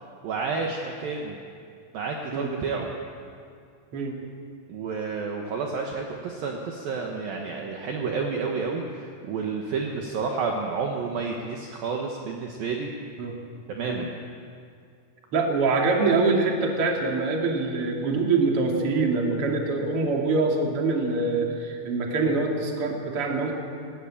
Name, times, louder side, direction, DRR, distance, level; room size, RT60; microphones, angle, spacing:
voice 1, 0.2-1.4 1.9-2.9 4.7-12.9 13.7-14.1, right 4 dB, 65° right, 1 dB, 2.7 m, -30 dB
voice 2, 15.3-23.5, right 3 dB, 40° right, 0 dB, 2.8 m, -24 dB
19.5 x 18.0 x 8.7 m, 2.4 s
omnidirectional pair, 5.2 m